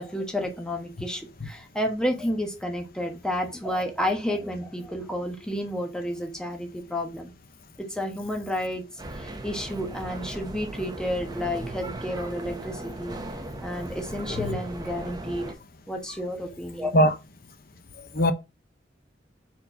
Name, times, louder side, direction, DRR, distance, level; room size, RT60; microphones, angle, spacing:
voice 1, 0.0-7.3 7.8-8.8 9.1-13.2 13.6-15.5 15.9-16.9, equal, 5° left, 1.3 m, -31 dB
sound 1, 9.0-15.5, right 1 dB, 25° right, 0.8 m, -37 dB
voice 2, 18.0-18.3, equal, 55° left, 0.9 m, -21 dB
4.6 x 4.3 x 5.5 m
head